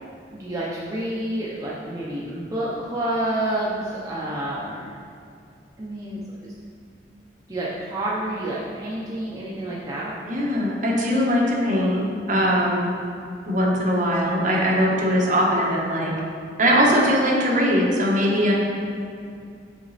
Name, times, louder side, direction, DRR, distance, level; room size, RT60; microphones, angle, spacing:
voice 1, 0.3-5.0 5.8-6.5 7.5-10.1 16.8-17.0, right 1 dB, 20° right, -7 dB, 0.6 m, -29 dB
voice 2, 10.2-12.9 13.4-16.1 16.6-18.5, equal, 45° right, -3 dB, 1.1 m, -21 dB
6.2 x 4.0 x 4.1 m, 2.4 s
head